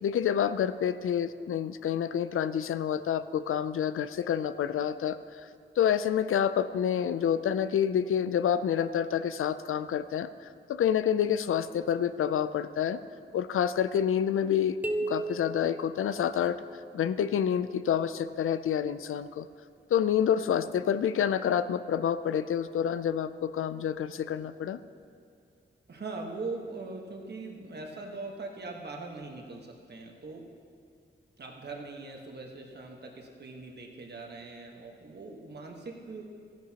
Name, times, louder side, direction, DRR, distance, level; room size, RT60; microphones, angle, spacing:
voice 1, 0.0-5.2 5.8-10.3 10.7-13.0 13.3-14.8 15.1-16.6 16.9-19.5 19.9-24.8, left 9 dB, 85° left, 13 dB, 0.4 m, -28 dB
sound 1, 14.8-16.8, right 2 dB, 5° right, 0.5 m, -35 dB
voice 2, 25.9-30.5 31.4-36.2, right 3 dB, 55° right, 1 dB, 1.3 m, -41 dB
15.0 x 10.5 x 2.9 m, 2.5 s
wide cardioid pair, 130°, 21 cm